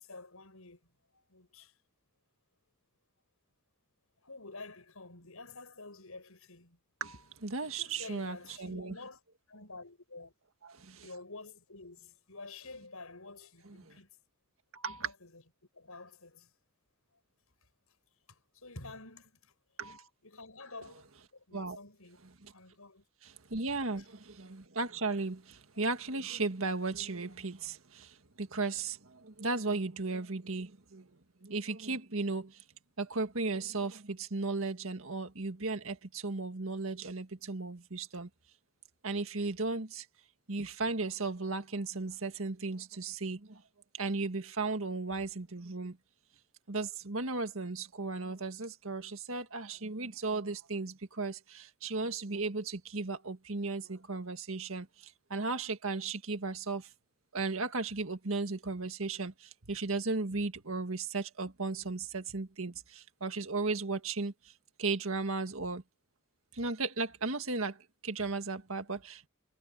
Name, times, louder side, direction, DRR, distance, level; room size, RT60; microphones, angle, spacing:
voice 1, 0.0-1.7 4.2-6.8 7.6-9.2 9.5-10.3 11.0-14.1 15.0-15.4 15.7-16.5 18.3-19.5 20.2-21.0 21.3-22.2 22.5-23.0, left 3 dB, 80° left, 6.7 m, -49 dB
voice 2, 7.0-9.0 10.6-11.1 13.7-14.0 14.7-15.1 19.8-20.1 21.5-21.8 22.4-22.5 23.2-31.1 31.4-32.6 33.0-38.3 39.0-40.1 40.5-43.6 43.9-46.0 46.7-56.9 57.3-64.5 64.8-65.8 66.5-69.3, right 3 dB, 70° right, 1.9 m, -36 dB
head